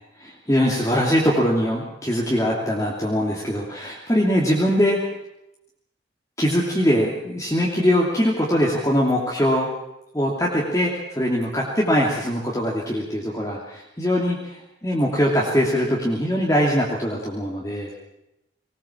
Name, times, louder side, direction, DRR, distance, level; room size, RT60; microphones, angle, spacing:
voice 1, 0.2-5.0 6.4-9.7 10.1-17.9, equal, 15° left, -4 dB, 2.9 m, -22 dB
20.5 x 19.5 x 7.4 m, 0.87 s
head